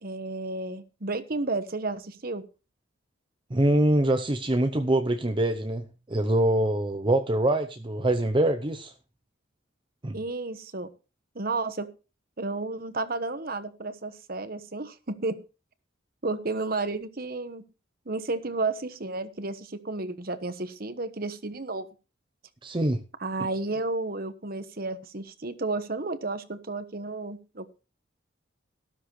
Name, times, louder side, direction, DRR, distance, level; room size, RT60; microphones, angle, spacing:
voice 1, 0.0-2.4 10.1-10.9 11.3-11.9 12.4-15.4 16.2-17.7 18.1-21.9 23.2-27.8, right 3 dB, 50° right, 1.2 m, -32 dB
voice 2, 3.5-8.9 10.0-10.2 22.6-23.0, right 1 dB, 25° right, 0.7 m, -24 dB
13.0 x 13.0 x 3.2 m
head